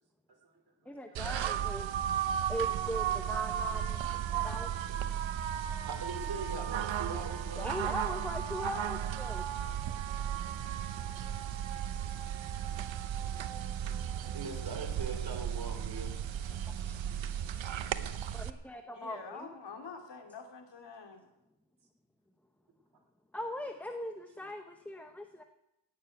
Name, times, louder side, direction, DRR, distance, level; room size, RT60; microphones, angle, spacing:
voice 1, 0.3-1.5 5.0-5.4 5.8-7.7 10.9-11.1 11.5-11.6 13.2-13.4 13.9-16.1 16.5-17.4 21.1-21.2 24.4-24.5, right 3 dB, 55° right, 3 dB, 3.0 m, -44 dB
voice 2, 0.9-1.9 2.5-4.7 7.6-9.5 16.7-17.0 18.3-19.5 23.3-25.4, equal, 5° left, 6 dB, 0.8 m, -40 dB
sound 1, 1.1-18.5, right 9 dB, 85° right, 0.9 m, -35 dB
voice 3, 18.9-21.2, left 4 dB, 65° left, 4 dB, 2.6 m, -46 dB
17.0 x 6.9 x 9.2 m, 0.89 s
wide cardioid pair, 135°, 45 cm